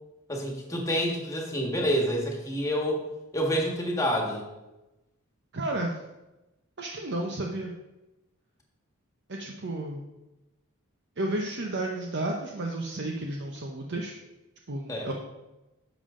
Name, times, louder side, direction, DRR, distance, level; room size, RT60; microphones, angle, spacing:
voice 1, 0.3-3.0 3.3-4.5 14.9-15.1, equal, 15° left, 1 dB, 1.6 m, -28 dB
voice 2, 5.5-6.0 6.8-7.7 9.3-10.0 11.2-14.2 14.7-15.1, right 2 dB, 50° right, 1 dB, 0.8 m, -32 dB
10.5 x 7.2 x 3.8 m, 1.0 s
head